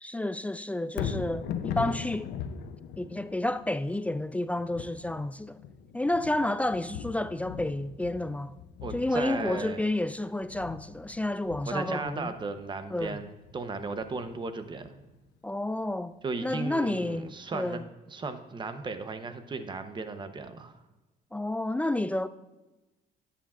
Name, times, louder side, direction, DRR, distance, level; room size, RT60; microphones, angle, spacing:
voice 1, 0.0-2.3 3.0-5.6 5.9-8.5 8.9-12.3 12.9-13.2 15.4-16.2 16.4-17.8 21.3-22.3, left 1 dB, 10° left, 0.3 m, -30 dB
Thunder, 0.9-15.1 15.5-15.6, left 7 dB, 80° left, 0.7 m, -40 dB
voice 2, 8.8-9.8 11.7-15.0 16.2-17.8 18.1-20.8, right 4 dB, 30° right, 0.9 m, -36 dB
13.0 x 8.5 x 2.5 m
cardioid pair, 110°, 17 cm